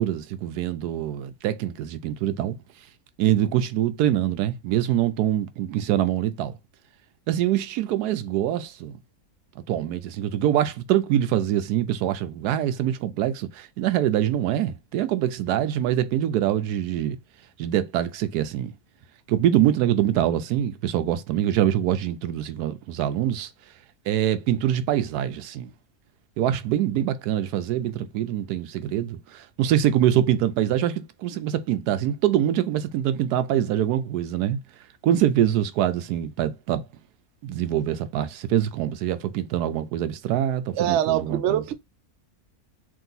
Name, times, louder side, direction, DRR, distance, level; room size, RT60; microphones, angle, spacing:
voice 1, 0.0-2.5 3.2-6.5 7.3-9.0 9.7-17.2 17.6-18.7 19.3-23.5 24.1-25.7 26.4-34.6 35.0-36.8 37.4-41.6, right 11 dB, 90° right, 1.1 m, -24 dB
voice 2, 40.7-41.7, right 10 dB, 65° right, 0.6 m, -23 dB
3.7 x 2.5 x 3.9 m
omnidirectional pair, 1.6 m